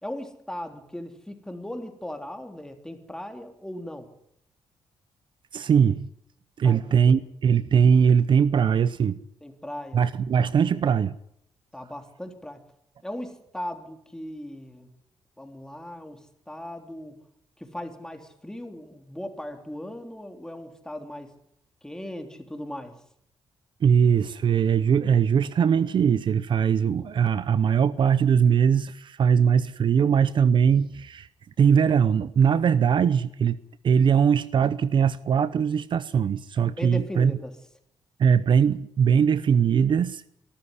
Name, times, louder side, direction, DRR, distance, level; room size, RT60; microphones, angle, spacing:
voice 1, 0.0-4.1 6.6-7.2 9.4-10.0 11.7-12.6 13.0-14.9 15.4-17.2 17.6-21.3 21.8-22.9 36.8-37.5, left 1 dB, 5° left, 3.4 m, -38 dB
voice 2, 5.5-6.1 6.6-9.2 9.9-11.2 23.8-31.3 31.6-33.6 33.8-37.3 38.2-40.3, right 7 dB, 60° right, 0.8 m, -21 dB
23.5 x 13.5 x 9.9 m
cardioid pair, 100°, 9 cm